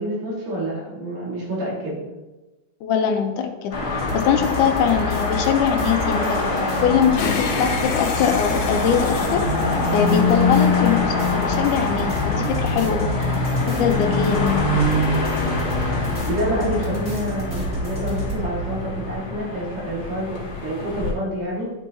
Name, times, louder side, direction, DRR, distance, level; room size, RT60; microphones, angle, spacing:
voice 1, 0.0-2.0 16.1-21.7, right 1 dB, 85° right, -5 dB, 3.5 m, -28 dB
voice 2, 2.8-3.7 4.1-6.5 6.8-9.5 9.9-13.2 13.7-14.7, left 7 dB, 85° left, 5 dB, 2.2 m, -22 dB
sound 1, 3.7-21.1, left 2 dB, 50° left, 1.2 m, -24 dB
sound 2, 4.0-18.4, left 3 dB, 15° right, 0.9 m, -31 dB
sound 3, 7.2-10.7, left 5 dB, 70° left, 1.8 m, -30 dB
10.5 x 4.6 x 2.8 m, 1.1 s
omnidirectional pair, 3.6 m